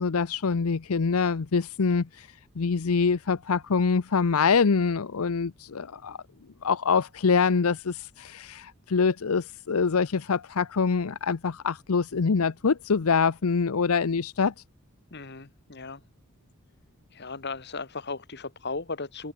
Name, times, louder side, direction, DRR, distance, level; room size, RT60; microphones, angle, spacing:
voice 1, 0.0-2.3 2.6-6.2 6.6-14.5, left 5 dB, 75° left, 0.6 m, -25 dB
voice 2, 15.1-16.0 17.1-19.3, left 3 dB, 50° left, 1.7 m, -36 dB
head